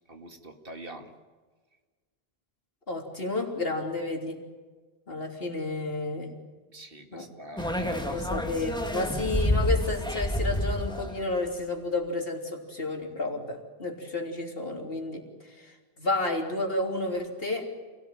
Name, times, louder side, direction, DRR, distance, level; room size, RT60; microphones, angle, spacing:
voice 1, 0.1-1.1 6.7-9.1, right 1 dB, 65° right, 5 dB, 2.5 m, -44 dB
voice 2, 2.9-4.4 5.1-6.3 7.1-7.3 8.1-15.2 15.6-17.7, left 2 dB, 70° left, 2 dB, 3.6 m, -31 dB
sound 1, 7.6-11.4, left 1 dB, 5° left, 1.8 m, -28 dB
28.0 x 18.0 x 9.2 m, 1.4 s
omnidirectional pair, 1.0 m